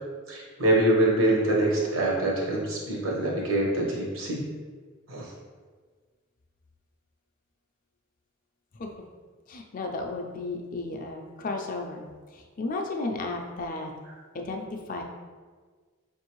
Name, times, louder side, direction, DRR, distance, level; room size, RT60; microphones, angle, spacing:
voice 1, 0.3-4.5 5.1-5.3, right 1 dB, 85° right, -3 dB, 1.1 m, -25 dB
voice 2, 9.5-12.0 12.3-13.9 14.3-15.0, left 2 dB, 40° left, 2 dB, 0.4 m, -33 dB
5.2 x 2.6 x 3.0 m, 1.5 s
head